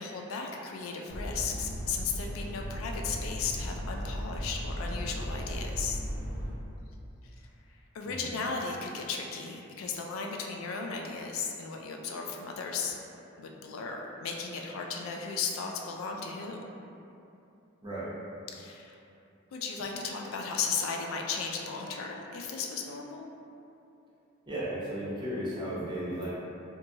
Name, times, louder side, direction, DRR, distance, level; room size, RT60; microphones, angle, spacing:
voice 1, 0.0-6.0 7.7-12.9 13.4-16.7 18.5-19.0 19.5-23.3, left 5 dB, 75° left, 1 dB, 0.3 m, -35 dB
sound 1, 1.1-6.5, equal, 20° left, 1.1 m, -36 dB
voice 2, 17.8-18.1 24.5-26.3, right 1 dB, 20° right, -9 dB, 0.6 m, -35 dB
2.9 x 2.2 x 2.6 m, 2.7 s
head